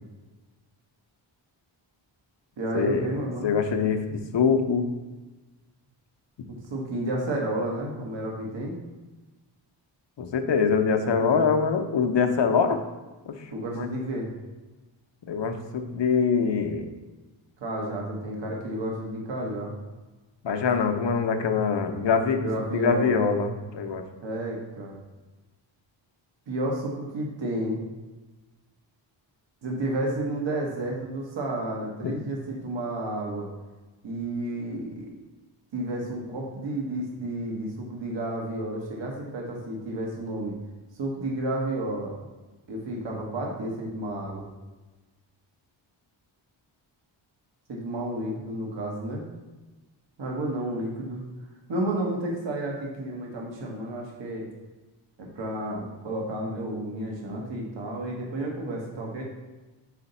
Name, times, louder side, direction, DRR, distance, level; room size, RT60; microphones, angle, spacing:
voice 1, 2.6-3.6 6.5-8.7 11.3-11.5 13.5-14.3 17.6-19.7 22.4-23.2 24.2-25.0 26.5-27.8 29.6-33.5 34.0-35.1 35.7-40.5 41.0-42.1 42.7-44.5 47.7-49.2 50.2-51.2 51.7-54.5 55.2-59.2, right 1 dB, 65° right, -1 dB, 1.5 m, -31 dB
voice 2, 3.4-4.9 10.2-12.8 13.3-13.4 13.7-13.9 15.3-16.9 20.4-24.0 32.0-32.2, left 5 dB, 60° left, 5 dB, 0.8 m, -24 dB
5.0 x 3.9 x 5.5 m, 1.2 s
cardioid pair, 65°, 48 cm